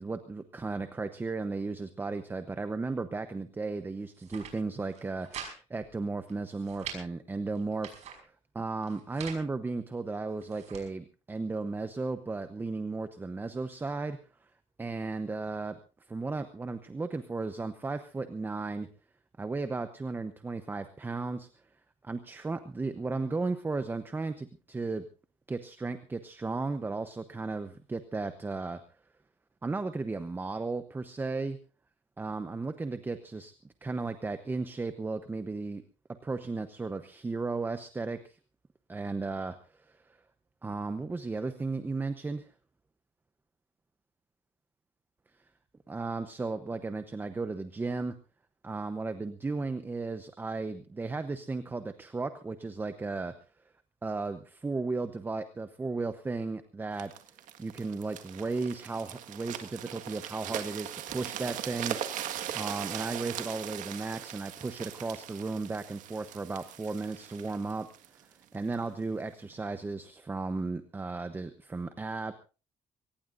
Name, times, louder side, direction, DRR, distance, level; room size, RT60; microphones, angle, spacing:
voice 1, 0.0-14.2 14.8-15.8 16.1-18.9 19.4-21.5 22.0-25.1 25.5-28.8 29.6-31.6 32.2-33.5 33.8-35.8 36.2-38.4 38.9-40.2 40.6-42.5 45.9-48.1 48.6-53.3 54.0-57.1 57.6-62.0 62.5-67.9 68.2-72.3, right 3 dB, 15° right, 10 dB, 0.9 m, -35 dB
sound 1, 4.0-4.5 4.9-5.5 5.8-5.9 6.3-7.0 7.6-8.2 8.8-9.4 10.1-10.8, right 8 dB, 65° right, 5.4 m, -44 dB
sound 2, 57.0-68.8 69.4-69.6, right 11 dB, 85° right, 1.7 m, -40 dB
23.0 x 19.0 x 2.6 m, 0.34 s
cardioid pair, 145°, 13 cm